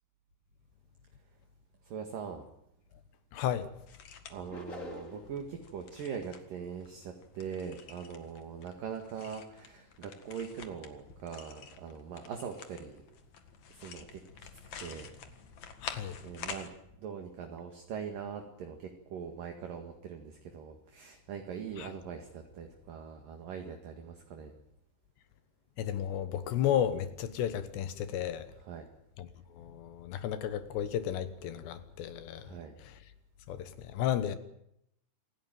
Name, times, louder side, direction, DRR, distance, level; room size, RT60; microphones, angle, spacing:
voice 1, 1.8-2.4 4.3-13.0 13.7-14.5 14.8-15.1 16.2-16.7 17.0-24.5 28.7-28.9 32.4-32.8, right 7 dB, 55° right, 3.1 m, -42 dB
voice 2, 3.3-3.7 15.8-16.2 21.8-21.9 25.8-28.5 29.2-33.0 33.5-34.4, left 10 dB, 70° left, 3.2 m, -33 dB
sound 1, 3.9-16.7, left 7 dB, 50° left, 2.5 m, -49 dB
sound 2, 4.5-5.4, left 1 dB, 25° left, 2.0 m, -44 dB
27.5 x 17.0 x 9.3 m
omnidirectional pair, 5.4 m